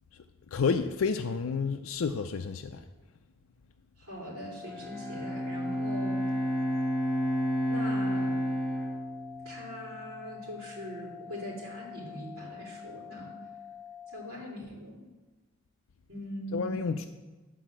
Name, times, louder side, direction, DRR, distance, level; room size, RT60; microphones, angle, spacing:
voice 1, 0.5-2.8 16.5-17.1, left 5 dB, 70° left, 7 dB, 0.4 m, -30 dB
voice 2, 4.0-6.2 7.7-8.4 9.4-13.3 14.1-15.0 16.1-16.7, equal, 70° right, -6 dB, 2.8 m, -41 dB
sound 1, 4.3-14.3, left 8 dB, 45° right, 1.0 m, -47 dB
Bowed string instrument, 4.6-10.0, equal, 5° left, 1.6 m, -31 dB
9.9 x 4.2 x 7.5 m, 1.2 s
head